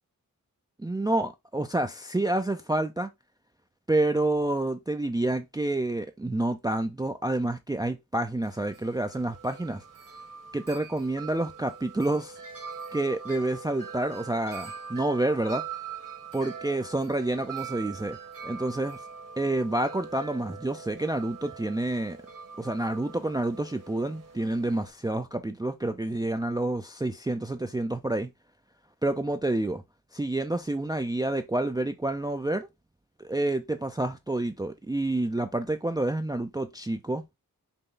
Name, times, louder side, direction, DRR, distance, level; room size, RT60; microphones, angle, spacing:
voice 1, 0.8-3.1 3.9-9.8 10.5-12.4 12.9-15.7 16.3-18.2 18.4-19.0 19.4-22.2 22.6-28.3 29.0-29.8 30.1-32.7 33.2-37.2, right 2 dB, 10° right, 0.4 m, -28 dB
Wind chime, 8.4-24.9, right 6 dB, 60° right, 1.4 m, -43 dB
5.4 x 2.3 x 3.8 m
wide cardioid pair, 70°, 35 cm